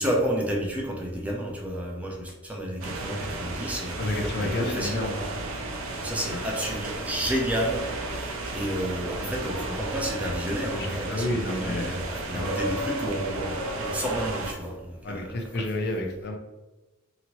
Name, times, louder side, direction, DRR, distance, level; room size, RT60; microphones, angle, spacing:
voice 1, 0.0-5.1 6.0-15.6, equal, 5° right, -2 dB, 0.4 m, -31 dB
sound 1, 2.8-14.5, right 2 dB, 65° right, 0.5 m, -33 dB
voice 2, 4.0-5.2 6.3-6.4 9.2-9.3 9.6-9.7 10.7-12.0 12.3-12.5 15.0-16.4, left 1 dB, 50° left, 2 dB, 0.5 m, -30 dB
2.8 x 2.6 x 2.9 m, 1.1 s
head